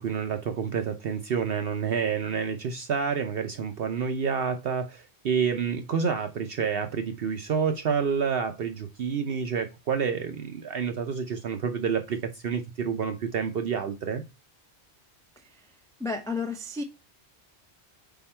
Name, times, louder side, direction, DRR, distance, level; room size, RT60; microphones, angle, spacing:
voice 1, 0.0-14.2, right 6 dB, 65° right, 0.9 m, -28 dB
voice 2, 15.4-16.8, left 3 dB, 5° left, 0.6 m, -33 dB
5.8 x 4.4 x 4.3 m
omnidirectional pair, 1.1 m